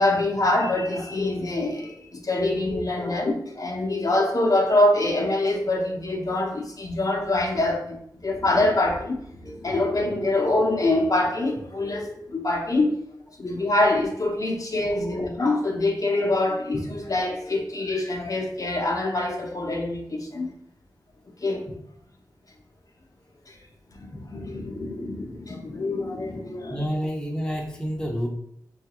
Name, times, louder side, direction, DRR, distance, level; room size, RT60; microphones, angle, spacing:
voice 1, 0.0-13.0 13.4-20.5 21.4-21.7 23.5-23.6 23.9-26.8, left 2 dB, 50° left, 0.7 m, -25 dB
voice 2, 26.7-28.3, equal, 10° left, 0.7 m, -29 dB
5.5 x 2.3 x 2.9 m
wide cardioid pair, 90°, 8 cm